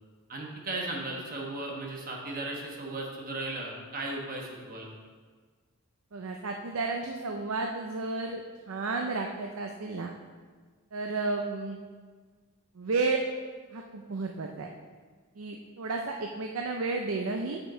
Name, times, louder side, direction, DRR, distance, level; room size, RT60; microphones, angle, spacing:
voice 1, 0.3-4.9, right 2 dB, 40° right, -1 dB, 1.2 m, -36 dB
voice 2, 6.1-8.4 8.7-10.1 10.9-11.8 12.8-13.2 13.7-14.7 15.4-17.6, right 3 dB, 70° right, 2 dB, 0.6 m, -32 dB
8.4 x 5.9 x 4.3 m, 1.5 s
head